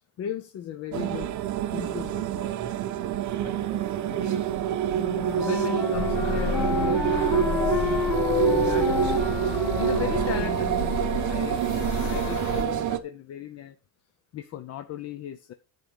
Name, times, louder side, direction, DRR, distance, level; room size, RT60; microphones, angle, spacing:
voice 1, 0.2-1.4 1.7-2.6 3.3-4.6 5.4-7.9 8.5-11.0 11.3-13.8 14.3-15.5, left 9 dB, 35° left, 0.5 m, -37 dB
Shadow Maker - Kitchen, 0.9-13.0, right 10 dB, 45° right, 0.8 m, -27 dB
Wind instrument woodwind instrument, 4.9-11.0, left 3 dB, ahead, 1.6 m, -31 dB
sound 1, 5.9-12.6, left 4 dB, 70° left, 2.9 m, -31 dB
10.5 x 3.9 x 7.2 m
cardioid pair, 170°, 43 cm